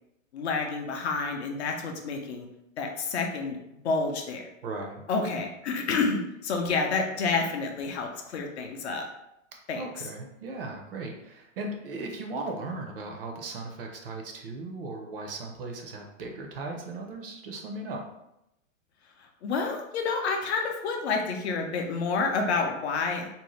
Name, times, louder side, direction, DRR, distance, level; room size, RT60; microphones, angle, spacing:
voice 1, 0.3-2.5 2.8-3.6 3.8-4.4 5.1-9.0 9.7-9.8 19.4-23.3, left 4 dB, 55° left, 2 dB, 0.5 m, -29 dB
voice 2, 4.6-5.0 9.7-18.0, right 2 dB, 45° right, 2 dB, 0.5 m, -37 dB
2.6 x 2.0 x 3.0 m, 0.85 s
hypercardioid pair, 150°, 40 cm